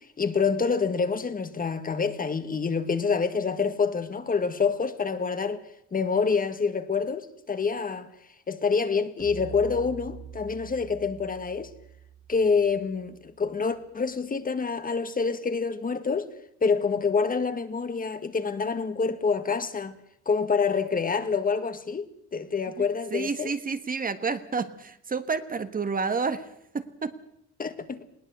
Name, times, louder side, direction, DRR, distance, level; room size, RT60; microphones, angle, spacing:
voice 1, 0.0-5.6 5.9-8.1 8.5-11.7 12.3-16.3 16.6-19.9 20.2-23.5 27.6-28.1, left 5 dB, 30° left, 1.7 m, -27 dB
sound 1, 9.2-13.5, right 9 dB, 90° right, 1.9 m, -45 dB
voice 2, 23.1-26.5 26.7-27.1, right 4 dB, 30° right, 1.5 m, -29 dB
20.5 x 18.5 x 8.0 m
cardioid pair, 115°, 30 cm